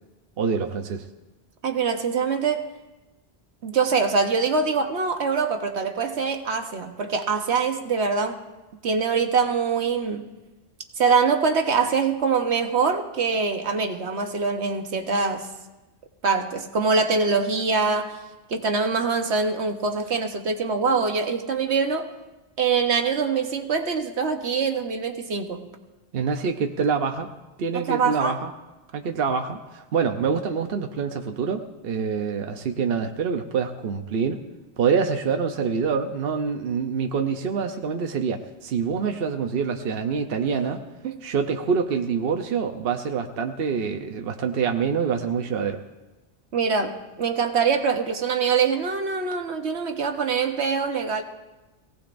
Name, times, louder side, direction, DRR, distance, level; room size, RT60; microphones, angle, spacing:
voice 1, 0.4-1.1 26.1-27.3 27.6-28.5 28.9-34.4 34.8-40.8 41.2-45.8, right 6 dB, 60° right, 5 dB, 0.9 m, -26 dB
voice 2, 1.6-2.6 3.6-8.4 8.8-10.3 11.0-15.5 16.2-18.2 18.5-22.1 22.6-25.6 27.7-28.4 41.0-41.2 46.5-51.2, right 5 dB, 75° right, 5 dB, 1.3 m, -24 dB
22.5 x 17.0 x 2.6 m, 1.1 s
omnidirectional pair, 1.1 m